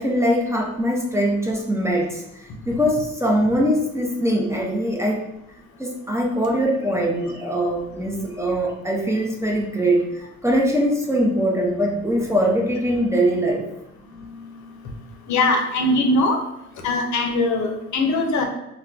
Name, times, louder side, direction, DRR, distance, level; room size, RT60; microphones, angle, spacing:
voice 1, 0.0-5.2 5.8-13.7, equal, 10° right, -1 dB, 0.6 m, -22 dB
voice 2, 15.3-16.4 16.8-18.5, left 2 dB, 70° left, 3 dB, 0.6 m, -21 dB
2.2 x 2.2 x 3.8 m, 0.83 s
cardioid pair, 90°, 30 cm